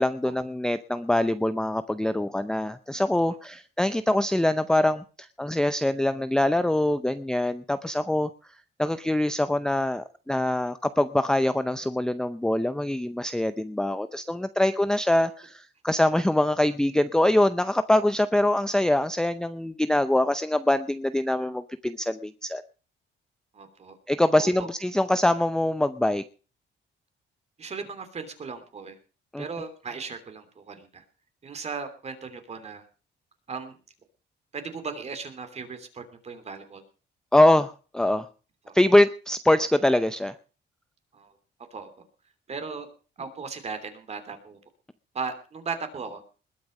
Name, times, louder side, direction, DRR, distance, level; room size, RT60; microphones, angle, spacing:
voice 1, 0.0-8.3 8.8-22.6 24.1-26.2 29.3-29.4 37.3-38.3 38.7-40.3, left 1 dB, 5° left, 11 dB, 0.6 m, -24 dB
voice 2, 23.5-24.0 24.4-24.7 27.6-29.0 29.4-31.0 31.4-32.8 33.5-33.8 34.5-36.8 38.6-38.7 41.1-41.3 41.7-41.9 42.5-42.9 43.2-44.6 45.1-46.2, right 5 dB, 35° right, 8 dB, 3.1 m, -37 dB
20.5 x 8.6 x 5.3 m, 0.37 s
cardioid pair, 155°, 20 cm